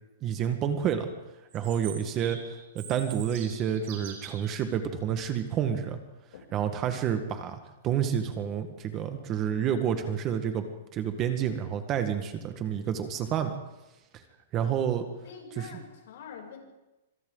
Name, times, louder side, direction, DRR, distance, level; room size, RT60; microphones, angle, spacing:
voice 1, 0.2-1.1 1.5-2.4 2.7-6.0 6.5-13.5 14.5-15.0 15.6-15.7, right 8 dB, 20° right, 7 dB, 1.4 m, -29 dB
Chirp tweet, 1.5-4.5, right 8 dB, 45° right, 7.2 m, -44 dB
voice 2, 15.2-16.6, left 6 dB, 60° left, 1 dB, 6.7 m, -45 dB
26.5 x 25.5 x 3.9 m, 1.0 s
hypercardioid pair, 170°, 0 cm